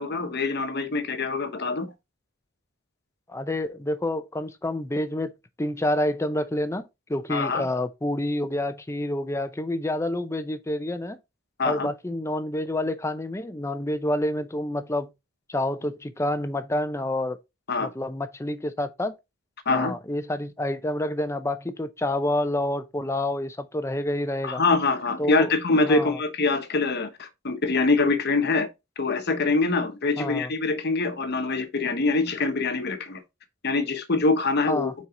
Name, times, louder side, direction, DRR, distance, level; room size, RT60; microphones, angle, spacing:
voice 1, 0.0-1.9 7.3-7.6 11.6-11.9 17.7-17.9 19.7-19.9 24.4-28.7 29.0-33.2 33.6-34.9, left 3 dB, 50° left, 1.1 m, -24 dB
voice 2, 3.3-5.3 5.6-11.2 11.6-15.1 15.5-17.4 17.8-19.1 19.7-24.6 25.2-25.5 25.8-26.2 30.2-30.5 34.7-34.9, left 1 dB, 15° left, 0.6 m, -28 dB
5.8 x 4.6 x 3.7 m
head